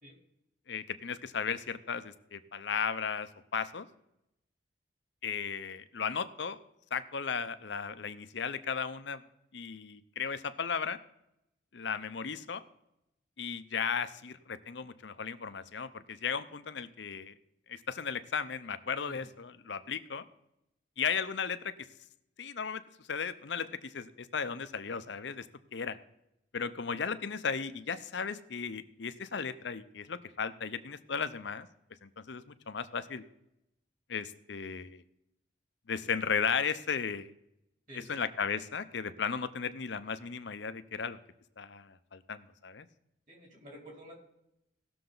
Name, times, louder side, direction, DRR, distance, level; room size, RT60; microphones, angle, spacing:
voice 1, 0.7-3.9 5.2-6.6 6.9-9.2 9.5-11.0 11.7-12.6 13.4-17.3 17.7-20.2 21.0-21.7 22.4-25.5 25.7-26.0 26.5-31.7 32.0-33.2 34.1-35.0 35.9-37.3 37.9-41.2 41.6-42.9, left 6 dB, 70° left, 12 dB, 0.7 m, -35 dB
voice 2, 37.9-38.2 43.3-44.2, equal, 40° right, -1 dB, 3.8 m, -50 dB
17.5 x 6.8 x 3.9 m, 0.85 s
head